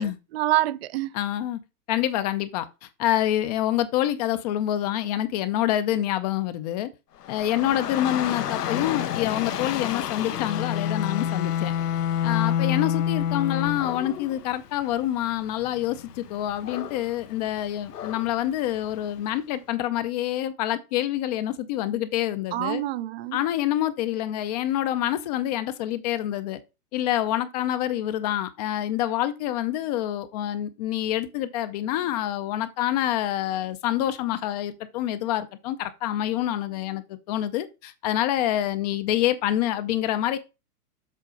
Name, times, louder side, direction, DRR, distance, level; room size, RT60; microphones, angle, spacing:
voice 1, 0.0-1.1 22.5-23.4, right 14 dB, 45° right, 0.4 m, -27 dB
voice 2, 1.1-1.6 1.9-6.9 7.3-11.7 12.2-22.8 23.3-26.6 26.9-40.4, left 12 dB, 30° left, 0.5 m, -27 dB
Dog / Rain, 7.2-19.3, left 10 dB, 90° left, 0.9 m, -35 dB
Bowed string instrument, 10.3-14.1, left 9 dB, 75° left, 0.6 m, -26 dB
7.6 x 3.7 x 5.0 m
hypercardioid pair, 135°, 46 cm